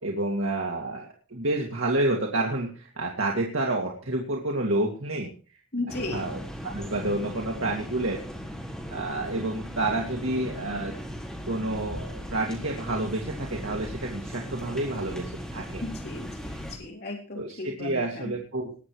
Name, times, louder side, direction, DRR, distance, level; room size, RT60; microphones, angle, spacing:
voice 1, 0.0-5.3 5.9-8.2 8.9-10.9 11.5-15.8 17.3-18.8, right 2 dB, 65° right, 0 dB, 2.3 m, -29 dB
voice 2, 5.7-6.3 15.8-16.5 16.8-18.3, left 2 dB, 50° left, -1 dB, 3.8 m, -35 dB
sound 1, 5.9-16.8, equal, 5° left, 4.3 m, -38 dB
20.0 x 7.8 x 4.8 m, 0.39 s
head